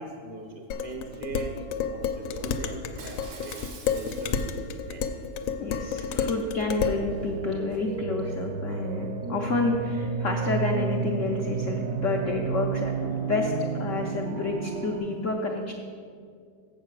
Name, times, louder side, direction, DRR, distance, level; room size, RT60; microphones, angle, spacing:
voice 1, 0.0-1.5 1.9-3.6 3.9-4.6 4.9-5.0 6.1-6.2, right 3 dB, 45° right, 2 dB, 0.7 m, -40 dB
Dishes pots and pans, 0.7-7.0, left 6 dB, 90° left, 1.4 m, -30 dB
Shatter, 3.0-4.8 5.2-5.5, right 4 dB, 75° right, 1.9 m, -46 dB
voice 2, 5.6-15.7, left 3 dB, 70° left, 0 dB, 0.7 m, -29 dB
sound 1, 7.0-15.0, right 5 dB, 60° right, 1.1 m, -31 dB
7.6 x 7.2 x 6.0 m, 2.2 s
omnidirectional pair, 2.1 m